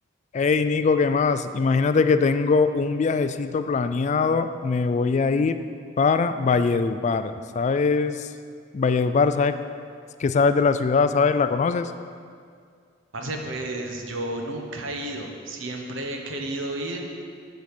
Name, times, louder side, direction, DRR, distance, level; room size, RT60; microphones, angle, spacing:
voice 1, 0.3-5.6 6.0-8.3 8.7-9.6 10.2-11.9, left 4 dB, 40° left, 11 dB, 0.3 m, -22 dB
voice 2, 13.1-17.0, right 1 dB, 85° right, 2 dB, 1.1 m, -32 dB
7.9 x 5.2 x 6.7 m, 2.2 s
head